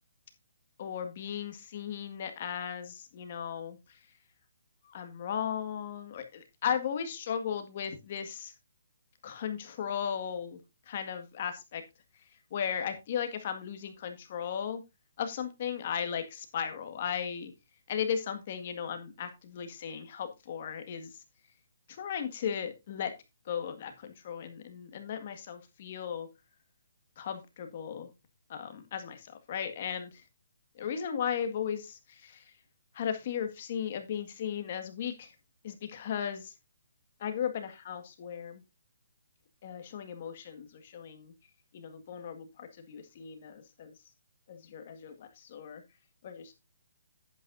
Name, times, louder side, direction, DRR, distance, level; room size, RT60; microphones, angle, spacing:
voice 1, 0.8-4.0 4.8-8.5 9.2-10.6 10.9-11.8 12.5-14.8 15.2-17.5 17.9-21.2 21.9-23.1 23.5-26.3 27.2-28.1 28.5-30.2 30.8-32.5 32.9-35.3 35.6-36.5 37.2-38.6 39.6-41.3 41.7-43.9 44.5-45.8 46.2-46.5, left 8 dB, 40° left, 7 dB, 1.8 m, -36 dB
10.5 x 9.1 x 2.6 m, 0.24 s
hypercardioid pair, 165°, 0 cm